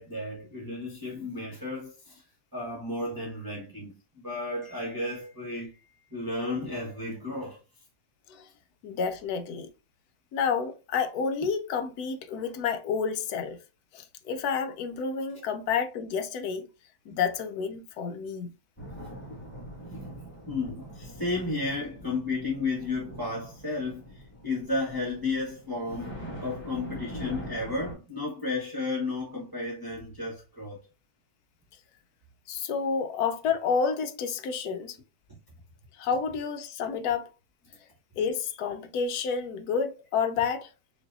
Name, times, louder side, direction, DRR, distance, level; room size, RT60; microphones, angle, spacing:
voice 1, 0.0-2.2 2.5-7.6 20.0-20.1 20.5-30.8, left 3 dB, 15° right, 0.9 m, -33 dB
voice 2, 8.8-9.7 10.3-13.6 13.9-16.7 17.1-18.5 32.5-35.0 36.0-37.3 38.2-40.7, left 6 dB, 75° left, 1.0 m, -29 dB
sound 1, 18.8-27.9, equal, 5° left, 1.3 m, -43 dB
5.1 x 2.7 x 2.5 m
omnidirectional pair, 1.8 m